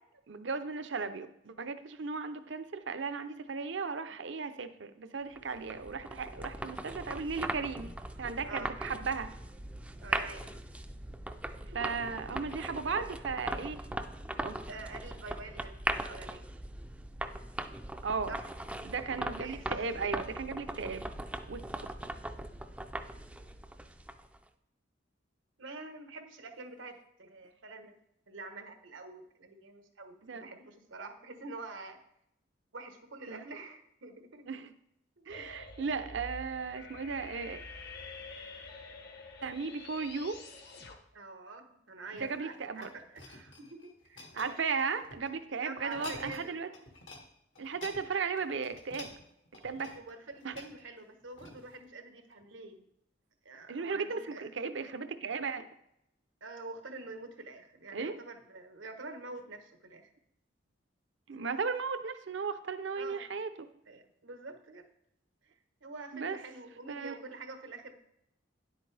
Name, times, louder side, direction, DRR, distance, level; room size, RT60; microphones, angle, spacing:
voice 1, 0.3-7.9 8.2-9.3 11.6-13.8 14.4-14.6 18.0-18.4 18.8-21.1 21.5-21.6 30.2-30.5 33.3-33.5 34.5-34.7 35.3-37.6 39.4-40.4 42.1-42.9 44.4-46.7 47.6-49.1 49.6-49.9 50.4-50.5 53.7-55.7 57.9-58.2 61.3-63.7 66.1-66.4 66.9-67.1, right 5 dB, 70° right, 10 dB, 0.7 m, -36 dB
sound 1, 5.4-24.4, right 1 dB, 5° right, 0.4 m, -39 dB
voice 2, 8.4-8.8 10.0-10.6 11.7-11.8 14.7-16.4 18.3-18.5 19.4-19.7 21.7-22.0 25.6-28.0 28.3-32.0 32.7-34.5 35.2-35.5 41.1-44.9 45.6-46.5 49.9-52.9 53.4-54.5 56.4-60.1 62.9-63.3 63.9-64.9 65.4-65.5 65.8-67.9, right 3 dB, 90° right, 7 dB, 1.1 m, -46 dB
sound 2, 35.3-40.9, left 3 dB, 60° left, 1.1 m, -47 dB
sound 3, 42.1-45.3 45.8-46.5 46.7-47.2 47.5-51.8 52.4-52.5, left 2 dB, 75° left, 1.7 m, -50 dB
10.0 x 8.1 x 3.4 m, 0.78 s
head